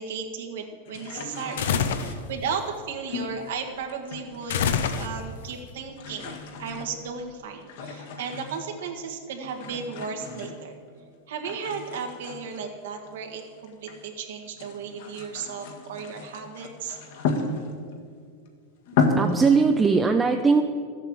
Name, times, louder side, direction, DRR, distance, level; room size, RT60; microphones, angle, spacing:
voice 1, 0.0-10.8 11.3-17.0, right 5 dB, 80° right, 3 dB, 1.7 m, -35 dB
sound 1, 0.9-2.1 3.1-4.6 4.8-5.4 5.7-8.8 9.4-11.1 11.4-14.1 14.5-18.0 18.5-18.6 18.9-19.6, left 4 dB, 65° left, 1.6 m, -33 dB
sound 2, 1.6-2.2 4.5-5.4, left 7 dB, 80° left, 0.9 m, -25 dB
voice 2, 19.2-20.6, right 4 dB, 15° right, 4 dB, 0.6 m, -20 dB
12.5 x 8.1 x 7.7 m, 2.1 s
supercardioid pair, 150°, 0 cm